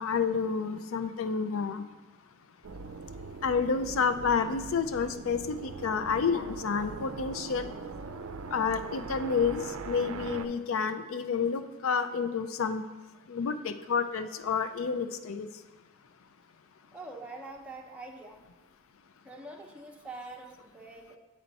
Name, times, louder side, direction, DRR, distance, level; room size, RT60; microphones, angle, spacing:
voice 1, 0.0-1.8 3.4-7.7 8.5-12.8 13.3-15.5, left 5 dB, 70° left, 10 dB, 0.4 m, -29 dB
sound 1, 2.6-10.5, right 4 dB, 75° right, 0.4 m, -41 dB
voice 2, 16.9-18.4 19.2-21.2, right 2 dB, 5° right, 0 dB, 0.7 m, -44 dB
8.9 x 4.3 x 4.0 m, 1.2 s
head